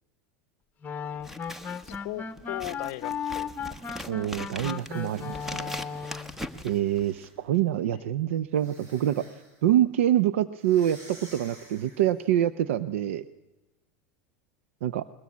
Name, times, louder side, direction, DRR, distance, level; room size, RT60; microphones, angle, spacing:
sound 1, 0.8-6.4, left 6 dB, 25° left, 1.1 m, -36 dB
Scissors, 1.2-7.4, left 1 dB, 5° right, 1.2 m, -41 dB
voice 1, 1.8-4.1 7.9-8.0, left 19 dB, 70° left, 0.7 m, -39 dB
voice 2, 4.1-5.8 6.6-9.3 9.6-13.3 14.8-15.1, right 11 dB, 85° right, 0.7 m, -26 dB
sound 2, 4.5-7.4 8.5-9.7 10.6-12.3, right 1 dB, 45° right, 7.6 m, -53 dB
21.5 x 19.5 x 8.5 m
supercardioid pair, 120°, 7 cm